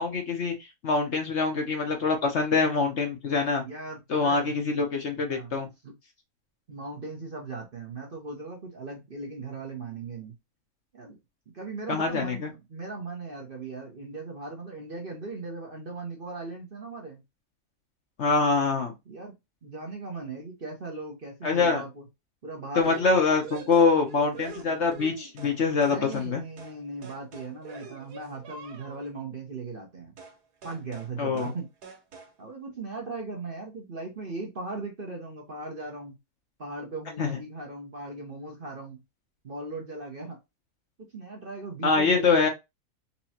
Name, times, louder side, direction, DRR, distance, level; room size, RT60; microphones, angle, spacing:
voice 1, 0.0-3.6 4.1-5.7 11.9-12.5 18.2-18.9 21.4-21.8 22.7-26.4 31.2-31.5 37.2-37.4 41.8-42.5, left 4 dB, 50° left, 3 dB, 1.1 m, -24 dB
voice 2, 3.6-4.5 5.3-5.6 5.8-5.9 6.7-10.3 10.9-11.2 11.5-17.2 19.1-19.3 19.6-22.1 22.4-23.2 25.8-30.1 30.6-31.7 32.4-36.2 36.6-39.0 39.4-40.4 41.0-42.5, right 3 dB, 40° right, 1 dB, 1.1 m, -38 dB
sound 1, 22.8-25.6 25.8-26.3 26.6-26.8 27.0-29.1 30.2-30.4 30.6-31.1 31.4-31.6 31.8-32.3, right 5 dB, 90° right, 1.6 m, -44 dB
4.2 x 3.0 x 2.8 m, 0.22 s
omnidirectional pair, 1.7 m